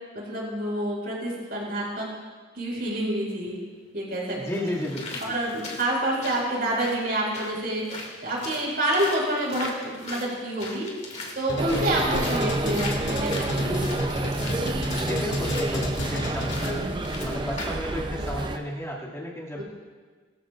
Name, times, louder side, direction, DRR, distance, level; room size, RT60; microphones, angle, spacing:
voice 1, 0.1-2.1 2.5-3.6 3.9-4.7 5.2-7.9 8.2-10.9 11.4-13.9 19.6-19.7, right 1 dB, 55° right, -3 dB, 5.1 m, -28 dB
sound 1, 3.4-3.5 4.3-17.9 18.3-18.4, left 2 dB, 35° left, 2.4 m, -39 dB
voice 2, 4.4-5.4 12.0-12.5 15.0-19.6, left 1 dB, 15° left, -5 dB, 2.3 m, -33 dB
sound 2, 11.5-17.0, equal, 70° left, 2.0 m, -30 dB
sound 3, 11.6-18.6, right 2 dB, 25° right, 0.6 m, -29 dB
22.0 x 13.5 x 2.5 m, 1.5 s
head